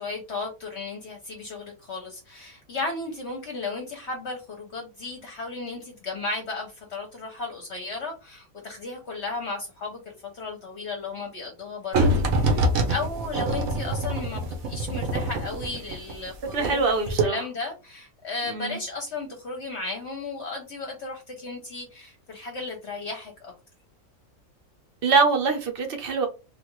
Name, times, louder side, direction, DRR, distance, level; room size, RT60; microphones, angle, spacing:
voice 1, 0.0-23.5, left 3 dB, 55° left, 0.9 m, -35 dB
sound 1, 11.9-16.8 17.1-17.2, right 1 dB, 70° right, 1.2 m, -25 dB
voice 2, 16.5-17.4 18.5-18.8 25.0-26.3, right 4 dB, 50° right, 0.8 m, -23 dB
3.3 x 2.4 x 2.9 m
omnidirectional pair, 1.5 m